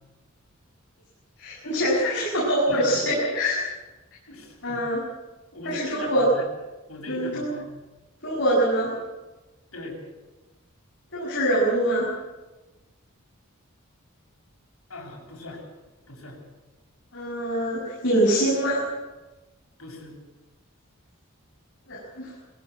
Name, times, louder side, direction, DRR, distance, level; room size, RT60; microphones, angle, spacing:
voice 1, 1.4-3.6 4.6-5.0 5.6-6.3 7.1-7.5 8.2-8.9 11.1-12.1 17.1-18.8 21.9-22.3, right 1 dB, 55° left, -6 dB, 7.4 m, -24 dB
voice 2, 2.7-3.0 4.3-4.9 5.5-6.5 6.9-7.7 9.7-10.0 14.9-15.6 16.1-16.4 19.8-20.2, left 2 dB, 80° left, 1 dB, 7.5 m, -39 dB
23.5 x 16.5 x 7.8 m, 1.1 s
head